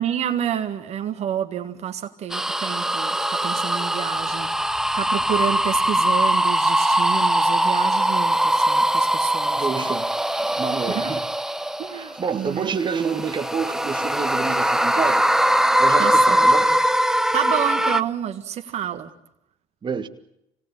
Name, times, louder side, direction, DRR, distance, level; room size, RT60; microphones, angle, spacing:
voice 1, 0.0-4.5 4.9-9.9 10.8-11.1 11.8-12.7 16.0-16.5 17.3-19.1, right 9 dB, 60° right, 1.7 m, -29 dB
sound 1, 2.3-12.2 12.8-18.0, right 1 dB, 5° right, 0.9 m, -21 dB
voice 2, 9.5-10.1 10.4-11.2 11.9-15.2 15.8-16.8 19.8-20.1, right 6 dB, 35° right, 1.8 m, -28 dB
25.0 x 18.5 x 8.6 m
supercardioid pair, 75°, 13 cm